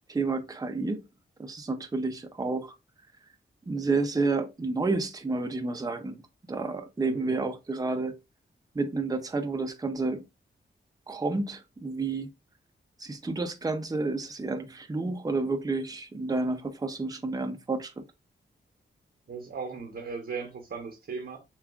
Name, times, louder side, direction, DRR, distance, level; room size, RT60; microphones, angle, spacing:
voice 1, 0.1-1.0 1.4-2.7 3.7-6.2 6.5-8.1 8.7-10.2 11.1-12.3 13.0-18.0, right 3 dB, 20° right, 0.5 m, -30 dB
voice 2, 7.0-7.4 19.3-21.4, right 5 dB, 60° right, 0.8 m, -37 dB
6.9 x 2.3 x 2.3 m
wide cardioid pair, 100°, 20 cm